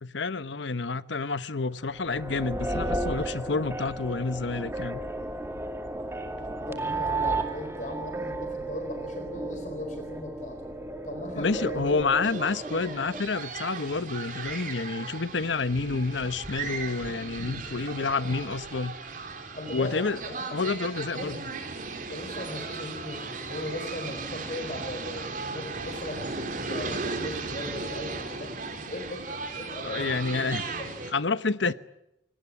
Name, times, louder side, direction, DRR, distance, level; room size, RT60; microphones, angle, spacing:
voice 1, 0.0-5.0 11.3-19.0 19.7-20.2 20.5-21.5 29.8-30.7 31.1-31.7, left 4 dB, 85° left, 1.0 m, -29 dB
sound 1, 1.9-13.2, right 2 dB, 15° right, 2.3 m, -33 dB
voice 2, 6.7-10.6 11.0-12.0 19.6-20.3 21.1-21.3 22.1-28.6 28.9-30.4 30.8-30.9 31.6-31.7, left 1 dB, 45° left, 4.2 m, -38 dB
sound 2, 12.2-31.1, right 3 dB, 45° right, 3.7 m, -36 dB
27.5 x 19.0 x 9.7 m
head